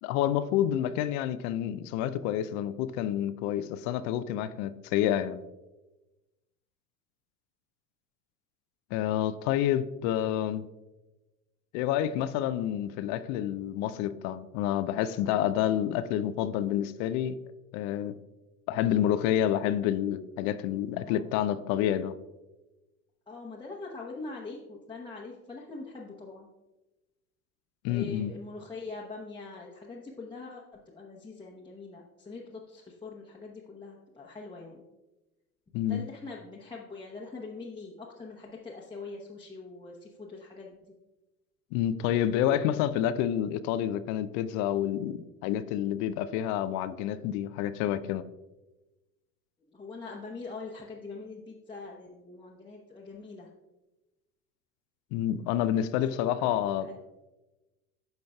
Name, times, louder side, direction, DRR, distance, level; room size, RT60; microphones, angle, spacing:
voice 1, 0.0-5.4 8.9-10.6 11.7-17.4 17.7-18.2 18.7-22.1 27.8-28.3 35.7-36.1 41.7-48.2 55.1-56.9, left 11 dB, 45° left, 0.5 m, -28 dB
voice 2, 23.3-26.5 27.9-34.8 35.9-40.7 49.7-53.5 56.1-56.6 56.9-57.0, left 3 dB, 10° left, 0.9 m, -43 dB
13.5 x 5.2 x 2.3 m
figure-of-eight pair, 75°, 44 cm